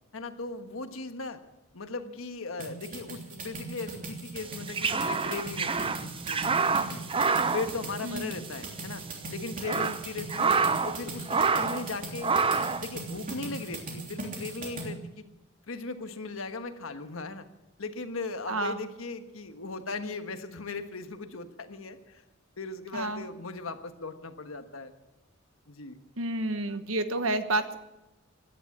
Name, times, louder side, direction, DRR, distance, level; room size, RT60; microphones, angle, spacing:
voice 1, 0.1-1.4 1.7-7.0 7.5-9.0 9.3-10.6 10.8-12.3 12.8-15.2 15.7-17.4 17.8-22.2 22.6-24.9 25.7-26.0, left 3 dB, 85° left, 8 dB, 1.4 m, -38 dB
sound 1, 2.6-14.9, right 3 dB, 40° right, 3.2 m, -39 dB
sound 2, 4.4-8.5 8.8-8.9 9.4-11.0 11.3-11.9 12.2-12.9, right 5 dB, 25° right, 0.6 m, -27 dB
voice 2, 8.0-8.3 18.5-18.8 22.9-23.2 26.2-27.8, right 2 dB, 85° right, 9 dB, 1.3 m, -30 dB
16.0 x 11.0 x 7.3 m, 0.97 s
head